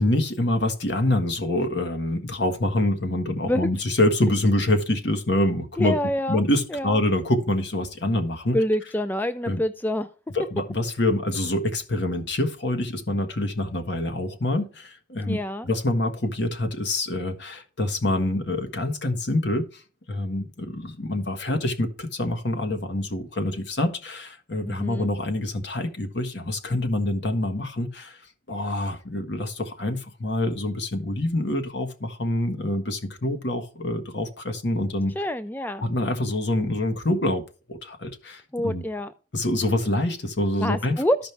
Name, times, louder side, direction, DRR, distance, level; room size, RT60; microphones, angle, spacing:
voice 1, 0.0-6.0 6.3-8.6 9.5-9.6 10.3-15.4 15.6-19.6 20.1-28.2 28.5-35.1 35.8-37.4 37.7-38.8 39.3-41.0, left 1 dB, 65° left, 1.5 m, -26 dB
voice 2, 5.8-6.4 6.7-7.0 8.5-10.1 15.3-15.7 24.6-25.1 35.2-35.8 38.5-39.1 40.6-41.2, left 1 dB, 10° left, 0.4 m, -26 dB
13.5 x 5.2 x 3.4 m
head